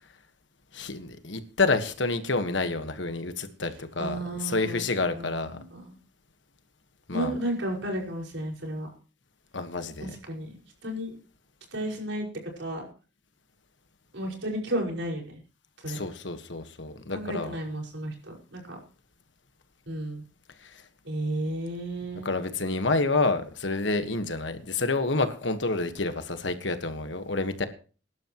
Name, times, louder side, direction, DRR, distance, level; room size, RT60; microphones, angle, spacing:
voice 1, 0.7-5.6 7.1-7.3 9.5-10.2 15.8-17.5 20.6-20.7 22.2-27.7, left 3 dB, 70° left, 1.5 m, -28 dB
voice 2, 4.0-4.8 5.1-5.3 5.5-5.9 7.1-8.9 10.0-10.6 10.8-11.1 11.7-12.3 12.6-12.9 14.1-15.4 15.8-16.0 17.1-18.8 19.9-20.2 21.1-22.3, right 1 dB, 80° right, 5.4 m, -33 dB
22.5 x 11.5 x 3.1 m
head